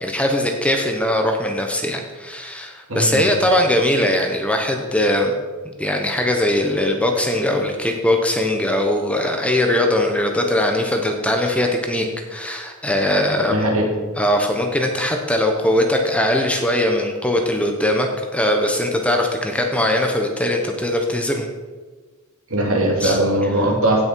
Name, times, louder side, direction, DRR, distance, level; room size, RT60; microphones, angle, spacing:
voice 1, 0.0-5.3 5.6-13.6 14.2-21.5 23.0-23.2, left 1 dB, 5° left, 3 dB, 1.0 m, -20 dB
voice 2, 2.9-3.3 13.5-13.8 22.5-24.0, right 1 dB, 65° right, 0 dB, 2.7 m, -19 dB
16.5 x 6.3 x 4.6 m, 1.4 s
head